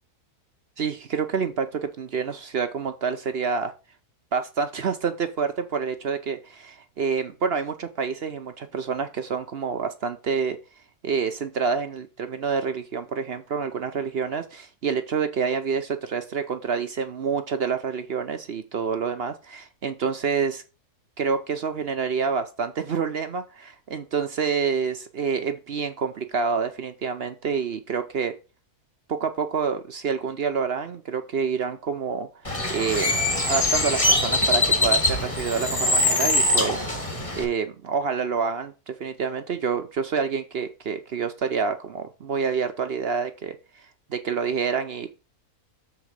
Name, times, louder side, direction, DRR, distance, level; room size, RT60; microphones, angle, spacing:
voice 1, 0.8-3.7 4.3-10.6 11.0-20.6 21.2-28.3 29.1-32.3 32.7-33.2 33.4-36.9 37.4-43.6 44.1-45.1, right 6 dB, 55° right, 8 dB, 0.7 m, -27 dB
Bird, 32.4-37.4, left 2 dB, 25° left, 1.4 m, -23 dB
7.1 x 4.0 x 6.4 m, 0.31 s
omnidirectional pair, 1.6 m